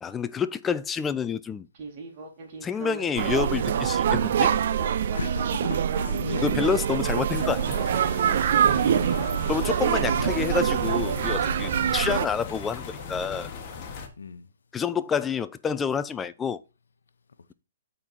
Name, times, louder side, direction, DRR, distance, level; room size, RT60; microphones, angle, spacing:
voice 1, 0.0-1.7 2.6-4.5 6.4-7.8 8.3-8.4 9.5-13.5 14.7-16.6, left 6 dB, 15° left, 0.4 m, -28 dB
Speech synthesizer, 1.7-10.1, right 3 dB, 40° right, 2.4 m, -39 dB
sound 1, 3.1-12.2, right 9 dB, 55° right, 0.5 m, -25 dB
voice 2, 5.1-7.0 8.6-9.3 14.2-14.5, left 5 dB, 80° left, 0.8 m, -36 dB
sound 2, 7.3-14.1, left 6 dB, 35° left, 1.5 m, -37 dB
8.8 x 4.1 x 4.4 m
hypercardioid pair, 140°, 0 cm